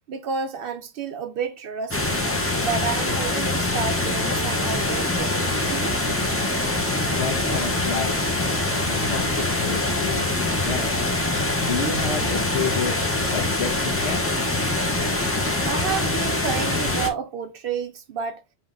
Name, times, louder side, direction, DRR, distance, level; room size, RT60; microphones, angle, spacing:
voice 1, 0.1-2.3 2.6-6.0 15.6-18.4, right 6 dB, 65° right, 0.7 m, -30 dB
sound 1, 1.9-17.1, left 2 dB, 15° left, 0.5 m, -24 dB
voice 2, 7.1-8.1 8.9-10.9 11.6-13.0 13.3-14.5, left 5 dB, 75° left, 1.3 m, -30 dB
7.1 x 2.9 x 2.5 m
omnidirectional pair, 1.1 m